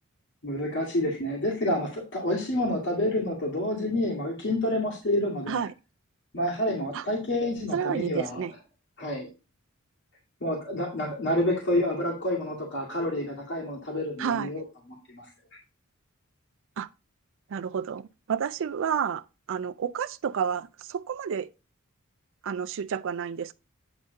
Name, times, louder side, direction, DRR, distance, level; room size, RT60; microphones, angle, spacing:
voice 1, 0.4-5.6 6.3-8.5 9.0-9.3 10.4-14.6 15.1-15.3 15.5-15.6, left 1 dB, 55° left, 2.1 m, -28 dB
voice 2, 7.7-8.5 14.2-14.5 16.8-16.9 17.5-19.2 19.5-21.5 22.4-23.5, right 7 dB, 60° right, 0.4 m, -30 dB
9.0 x 3.7 x 5.2 m
head